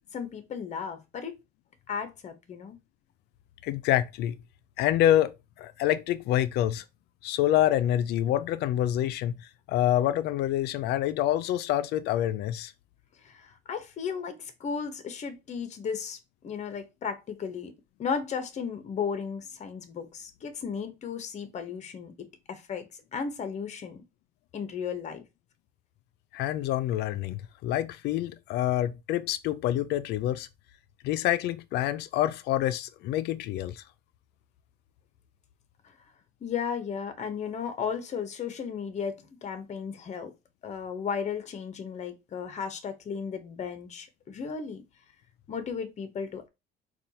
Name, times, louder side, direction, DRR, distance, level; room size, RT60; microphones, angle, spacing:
voice 1, 0.1-1.4 1.9-2.8 13.2-16.2 16.4-17.7 18.0-24.0 24.5-25.2 36.4-40.3 40.6-44.8 45.5-46.5, left 6 dB, 45° left, 0.8 m, -35 dB
voice 2, 3.6-4.4 4.8-5.3 5.6-6.8 7.2-9.3 9.7-12.7 26.3-30.5 31.0-33.8, left 12 dB, 75° left, 0.4 m, -27 dB
4.2 x 2.3 x 2.7 m
cardioid pair, 110°, 17 cm